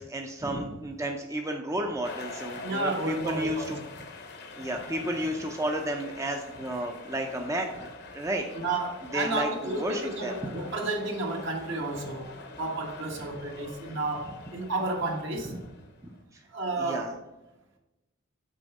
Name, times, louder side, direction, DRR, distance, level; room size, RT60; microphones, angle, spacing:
voice 1, 0.0-3.8 4.6-8.5 9.1-10.3 16.8-17.1, right 1 dB, 15° right, 3 dB, 0.5 m, -32 dB
sound 1, 2.0-16.2, left 3 dB, 55° left, 0.8 m, -45 dB
voice 2, 2.6-3.8 8.5-15.5 16.5-17.1, right 2 dB, 65° right, 1 dB, 1.3 m, -32 dB
6.3 x 4.3 x 5.3 m, 1.0 s
head